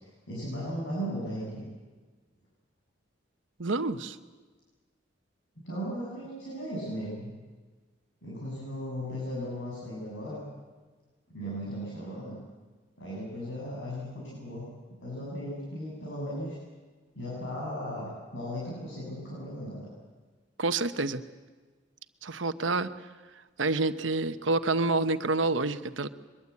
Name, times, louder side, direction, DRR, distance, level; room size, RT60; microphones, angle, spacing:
voice 1, 0.3-1.7 5.6-7.4 8.2-10.4 11.3-12.4 13.0-14.7 15.0-16.6 17.1-19.9, equal, 75° left, -6 dB, 7.9 m, -36 dB
voice 2, 3.6-4.2 20.6-21.2 22.2-22.9 23.6-26.1, right 3 dB, 85° right, 11 dB, 1.1 m, -28 dB
23.5 x 22.0 x 8.5 m, 1.4 s
head